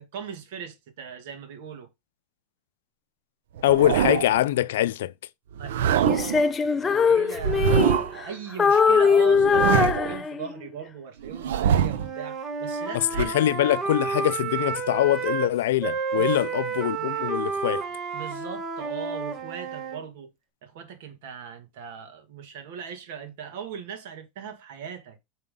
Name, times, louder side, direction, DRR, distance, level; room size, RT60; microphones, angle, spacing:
voice 1, 0.0-1.9 5.6-13.3 16.1-16.6 17.0-17.1 18.1-20.3 20.6-25.2, right 7 dB, 70° right, 1.9 m, -39 dB
voice 2, 3.6-5.1 13.2-17.8, left 13 dB, 85° left, 0.4 m, -23 dB
sound 1, 3.6-4.4 5.5-6.5 7.4-8.3 9.3-10.2 11.2-12.1 13.1-13.2, right 9 dB, 85° right, 0.6 m, -24 dB
Female singing, 6.0-8.3 8.6-10.7, left 5 dB, 20° left, 0.6 m, -21 dB
Wind instrument woodwind instrument, 11.9-15.5 15.8-20.0, right 5 dB, 30° right, 1.3 m, -30 dB
5.6 x 5.5 x 3.7 m
supercardioid pair, 140°, 0 cm